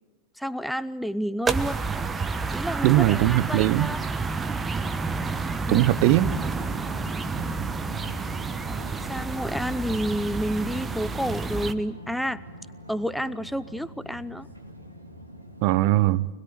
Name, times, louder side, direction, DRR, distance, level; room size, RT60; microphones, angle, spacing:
voice 1, 0.4-1.8 2.5-4.0 5.7-5.9 6.7-6.9 8.6-12.4 12.9-14.5, equal, ahead, 0.7 m, -30 dB
sound 1, 1.5-11.7, right 4 dB, 15° right, 1.2 m, -30 dB
voice 2, 2.8-3.9 5.7-6.3 15.6-16.3, right 17 dB, 45° right, 0.8 m, -20 dB
sound 2, 5.7-15.8, equal, 90° right, 2.5 m, -43 dB
25.5 x 21.0 x 7.9 m
figure-of-eight pair, 90°, 0 cm